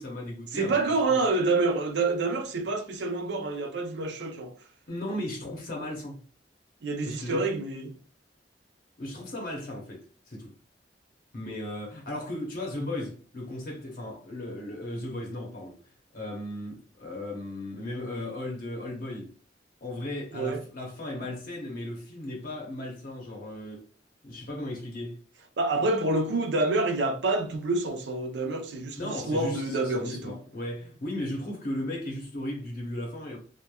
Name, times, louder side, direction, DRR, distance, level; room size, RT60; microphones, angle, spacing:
voice 1, 0.0-0.7 1.1-1.2 4.9-6.2 7.0-7.5 9.0-10.5 11.3-19.3 19.8-23.9 24.2-25.2 29.0-33.4, left 1 dB, 55° left, 0.7 m, -36 dB
voice 2, 0.5-4.5 6.8-7.9 20.3-20.6 25.6-30.4, right 3 dB, 70° right, 0.5 m, -27 dB
3.0 x 2.1 x 2.2 m
head